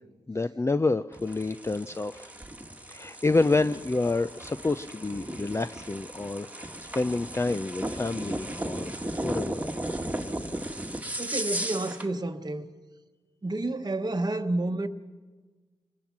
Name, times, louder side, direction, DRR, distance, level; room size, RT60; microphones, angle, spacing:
voice 1, 0.3-2.3 2.9-9.6, left 3 dB, 20° left, 0.5 m, -28 dB
sound 1, 1.1-12.1, right 1 dB, 10° right, 1.7 m, -36 dB
voice 2, 11.2-12.7 13.4-14.9, right 2 dB, 35° right, 1.2 m, -30 dB
24.5 x 20.5 x 6.0 m
supercardioid pair, 40°, 13 cm